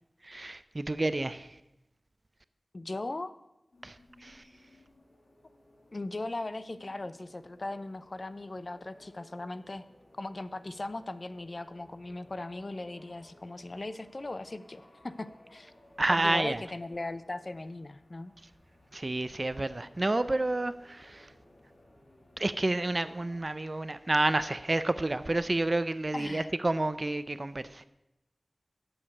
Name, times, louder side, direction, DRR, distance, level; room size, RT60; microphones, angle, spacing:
voice 1, 0.2-1.5 3.8-4.4 16.0-16.6 18.9-21.3 22.4-27.8, right 2 dB, 40° right, 0.5 m, -30 dB
voice 2, 2.7-3.3 5.9-9.9 10.2-15.7 16.1-18.3 26.1-26.5, left 2 dB, 50° left, 0.5 m, -38 dB
sound 1, 3.7-23.4, left 1 dB, 85° left, 2.5 m, -59 dB
8.5 x 7.2 x 6.5 m
wide cardioid pair, 70°, 0 cm